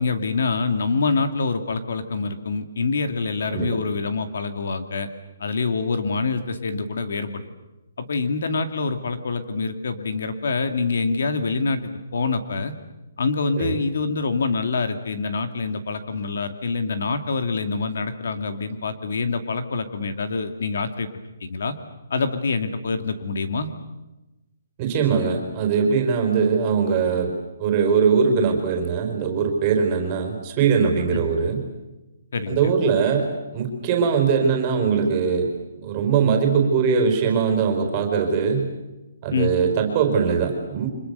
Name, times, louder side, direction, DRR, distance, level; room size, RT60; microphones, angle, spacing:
voice 1, 0.0-5.1 5.4-7.5 8.0-12.7 13.2-21.1 21.4-21.7 22.1-23.7 31.1-31.2 32.3-32.7 39.3-39.5, left 4 dB, 60° left, 8 dB, 2.5 m, -25 dB
voice 2, 24.8-27.3 27.6-31.6 32.5-35.5 35.8-38.7 39.2-40.9, right 6 dB, 20° right, 4 dB, 4.5 m, -21 dB
30.0 x 26.0 x 6.9 m, 1.0 s
hypercardioid pair, 175°, 0 cm